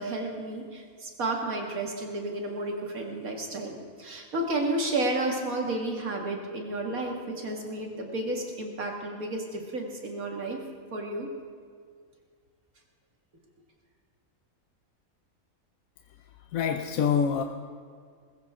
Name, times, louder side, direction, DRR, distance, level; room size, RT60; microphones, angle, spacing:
voice 1, 0.0-10.6 10.9-11.3, right 2 dB, 80° right, 1 dB, 2.5 m, -32 dB
voice 2, 16.5-17.4, left 7 dB, 75° left, 6 dB, 1.1 m, -25 dB
20.5 x 15.0 x 3.7 m, 2.1 s
omnidirectional pair, 1.5 m